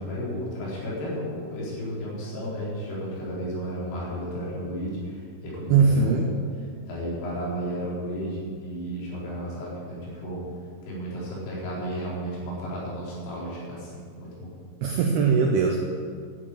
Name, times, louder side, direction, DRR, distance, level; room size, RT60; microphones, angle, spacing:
voice 1, 0.0-6.4 6.9-10.4 10.8-14.5, equal, 80° left, -6 dB, 6.6 m, -33 dB
voice 2, 5.7-6.3 14.8-15.8, right 5 dB, 85° right, 2 dB, 2.2 m, -20 dB
12.0 x 8.5 x 8.9 m, 2.1 s
omnidirectional pair, 5.8 m